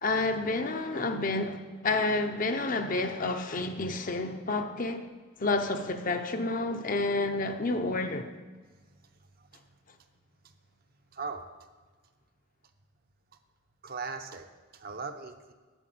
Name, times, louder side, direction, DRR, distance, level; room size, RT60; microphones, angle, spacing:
voice 1, 0.0-5.1 5.4-8.3, left 2 dB, 40° left, 0.7 m, -29 dB
voice 2, 9.0-9.7 10.4-10.5 11.1-11.5 13.8-14.5 14.7-15.5, right 4 dB, 45° right, 0.7 m, -40 dB
8.1 x 8.0 x 7.7 m
head